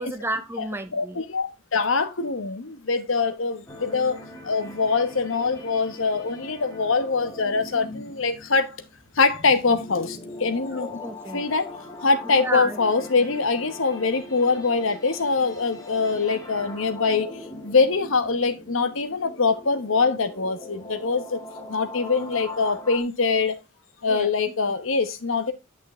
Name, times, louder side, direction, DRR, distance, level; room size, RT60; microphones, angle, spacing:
voice 1, 0.0-1.2 10.7-11.4 12.2-12.8 13.1-13.2 24.1-24.3, right 1 dB, 10° right, 0.8 m, -32 dB
voice 2, 0.6-4.2 4.4-8.8 9.1-10.9 11.3-11.7 12.0-17.3 17.6-21.4 21.7-23.6 24.0-25.5, left 4 dB, 70° left, 1.1 m, -23 dB
sound 1, 3.7-23.0, left 2 dB, 15° left, 1.9 m, -41 dB
8.7 x 6.2 x 3.1 m
head